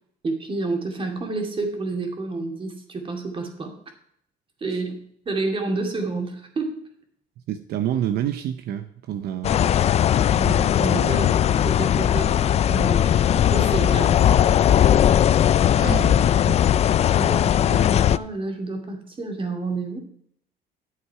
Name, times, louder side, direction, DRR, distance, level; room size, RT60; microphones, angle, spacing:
voice 1, 0.2-3.7 4.6-5.0 5.3-6.8 10.3-11.3 11.6-12.3 12.7-14.3 15.7-16.0 17.1-20.0, right 3 dB, 30° right, 3 dB, 2.4 m, -29 dB
voice 2, 7.5-9.6 11.0-11.3 15.8-16.6, right 10 dB, 70° right, 9 dB, 0.7 m, -29 dB
sound 1, 9.4-18.2, left 10 dB, 40° left, 0.3 m, -18 dB
11.5 x 8.0 x 4.7 m, 0.68 s
cardioid pair, 110°, 17 cm